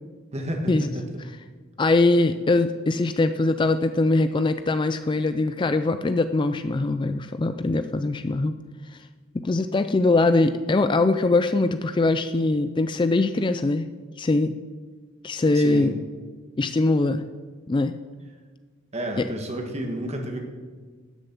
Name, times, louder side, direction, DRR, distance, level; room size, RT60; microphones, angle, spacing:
voice 1, 0.3-1.1 15.5-15.9 18.9-20.4, right 1 dB, 30° right, 3 dB, 1.7 m, -30 dB
voice 2, 1.8-8.5 8.9-9.0 9.4-13.9 14.2-14.5 15.2-15.9 16.6-17.3 17.7-17.9 19.2-19.3, left 2 dB, 25° left, 10 dB, 0.3 m, -22 dB
12.5 x 6.8 x 8.6 m, 1.5 s
head